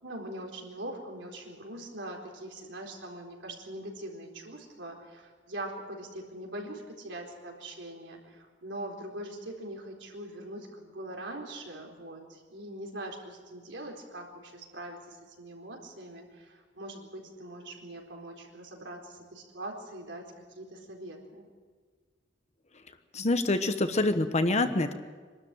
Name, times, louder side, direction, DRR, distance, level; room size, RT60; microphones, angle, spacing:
voice 1, 0.0-21.5, right 1 dB, 70° right, 0 dB, 4.2 m, -42 dB
voice 2, 23.1-24.9, left 2 dB, 40° left, 9 dB, 1.2 m, -26 dB
24.5 x 13.0 x 9.1 m, 1.5 s
head